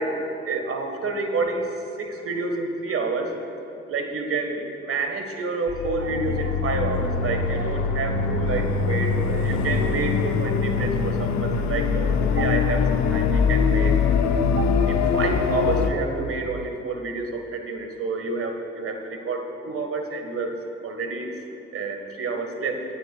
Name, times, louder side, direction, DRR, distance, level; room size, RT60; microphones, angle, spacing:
voice 1, 0.0-1.7 2.0-3.4 3.9-14.0 14.6-21.4 21.7-22.8, right 3 dB, 45° right, 5 dB, 1.6 m, -29 dB
sound 1, 5.7-15.9, left 5 dB, 65° left, 0.9 m, -23 dB
23.0 x 9.5 x 2.4 m, 2.8 s
hypercardioid pair, 50°, 30 cm